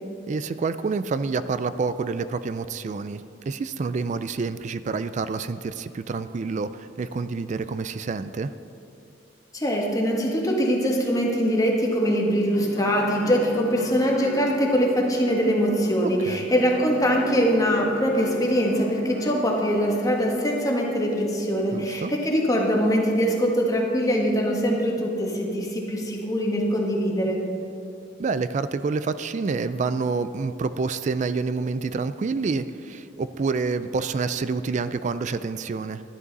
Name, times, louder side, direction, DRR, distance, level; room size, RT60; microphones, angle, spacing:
voice 1, 0.2-8.5 16.3-16.4 21.7-22.1 28.2-36.0, right 4 dB, 40° right, 13 dB, 0.3 m, -28 dB
voice 2, 9.5-27.4, equal, 20° left, -1 dB, 1.5 m, -23 dB
sound 1, 12.5-20.5, left 1 dB, 70° left, 2.5 m, -38 dB
12.0 x 11.0 x 4.1 m, 2.6 s
head